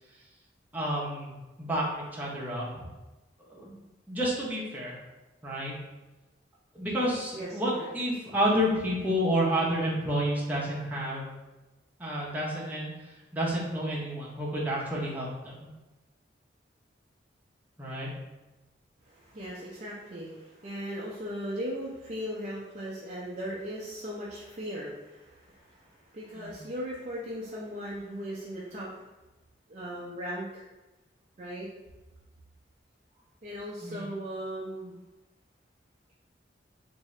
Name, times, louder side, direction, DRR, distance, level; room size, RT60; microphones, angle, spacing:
voice 1, 0.7-2.9 3.4-3.8 4.1-5.0 5.4-5.7 6.7-11.3 12.0-15.7 17.8-18.1 26.3-26.6 33.8-34.1, equal, 10° right, -6 dB, 0.8 m, -30 dB
voice 2, 7.3-7.9 19.0-29.0 29.7-30.7 31.4-31.7 33.4-34.9, equal, 40° right, -6 dB, 0.5 m, -38 dB
3.7 x 2.7 x 3.1 m, 1.1 s
head